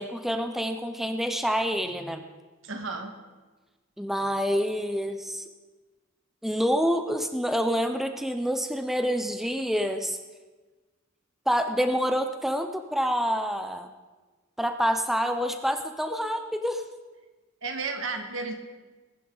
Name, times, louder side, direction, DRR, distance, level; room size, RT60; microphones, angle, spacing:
voice 1, 0.0-2.3 4.0-5.5 6.4-10.2 11.5-13.9 14.6-16.8, equal, ahead, 7 dB, 0.5 m, -27 dB
voice 2, 2.6-3.1 17.6-18.5, right 3 dB, 70° right, 5 dB, 1.6 m, -32 dB
20.0 x 10.5 x 3.9 m, 1.3 s
head